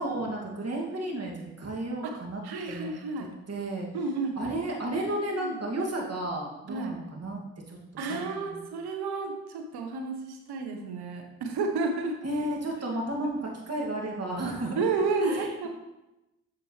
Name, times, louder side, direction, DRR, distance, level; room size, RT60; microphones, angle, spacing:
voice 1, 0.0-2.4 2.7-2.9 3.5-3.9 4.4-7.4 7.7-7.8 8.1-8.6 12.2-14.8 15.2-15.5, right 1 dB, 40° right, -1 dB, 2.3 m, -32 dB
voice 2, 2.4-3.3 3.9-4.3 5.4-5.6 6.7-7.0 8.0-12.2 14.8-15.7, right 3 dB, 70° right, 4 dB, 1.3 m, -31 dB
7.5 x 7.2 x 3.3 m, 0.95 s
hypercardioid pair, 40°, 40 cm